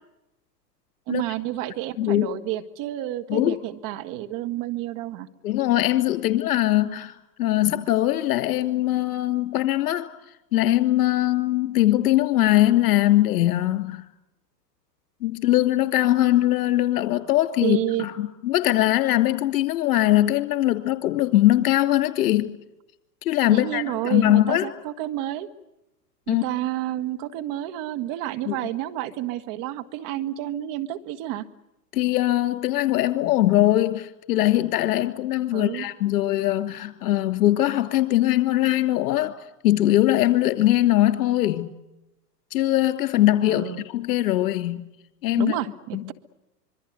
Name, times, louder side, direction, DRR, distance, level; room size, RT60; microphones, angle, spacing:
voice 1, 1.1-5.3 17.6-18.1 23.5-25.5 26.3-31.5 35.5-35.9 43.5-43.8 45.4-46.1, right 14 dB, 40° right, 9 dB, 1.9 m, -30 dB
voice 2, 5.4-10.1 10.5-14.1 15.2-22.6 23.2-24.7 26.3-26.4 28.5-28.6 31.9-39.3 39.6-41.7 42.5-44.8 45.2-45.5 45.9-46.0, left 14 dB, 60° left, 12 dB, 2.9 m, -21 dB
26.0 x 23.5 x 8.0 m, 0.91 s
hypercardioid pair, 110°, 49 cm